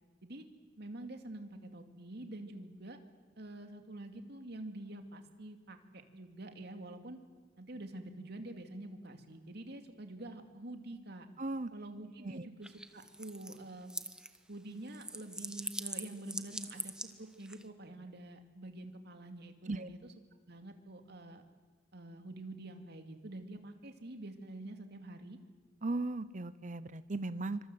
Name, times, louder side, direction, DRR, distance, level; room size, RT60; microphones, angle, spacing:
voice 1, 0.8-3.0 3.4-7.2 7.6-11.3 11.7-13.9 14.5-16.9 17.2-20.1 20.5-21.4 21.9-25.4, right 1 dB, 60° right, 6 dB, 2.5 m, -47 dB
voice 2, 11.4-11.7 12.2-12.5 19.7-19.9 25.8-27.6, right 2 dB, 40° right, 14 dB, 0.8 m, -37 dB
sound 1, 12.6-14.4 14.7-17.6, right 1 dB, 5° right, 1.2 m, -43 dB
26.0 x 25.0 x 7.8 m, 1.4 s
head